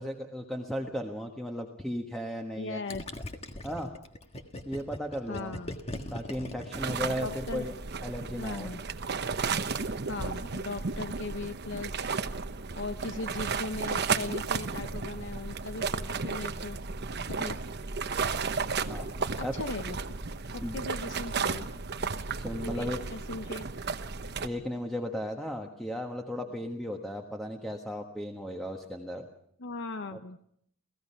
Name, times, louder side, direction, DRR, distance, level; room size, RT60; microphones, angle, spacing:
voice 1, 0.0-2.8 3.6-3.9 4.6-5.5 6.1-7.7 8.0-8.7 18.9-19.1 19.4-19.5 20.6-20.8 22.3-23.0 24.4-29.3 30.1-30.2, equal, ahead, 2 dB, 1.4 m, -35 dB
voice 2, 2.6-3.0 5.3-5.8 7.1-7.7 8.4-8.8 10.1-12.0 12.8-16.8 17.3-17.6 19.4-20.0 20.5-21.7 22.6-23.7 29.6-30.4, left 3 dB, 60° left, 9 dB, 0.8 m, -38 dB
Gurgling, 2.9-7.6, left 1 dB, 30° left, 1.6 m, -40 dB
sound 1, 6.7-24.5, right 5 dB, 55° right, 1.0 m, -33 dB
29.0 x 16.5 x 5.7 m, 0.69 s
head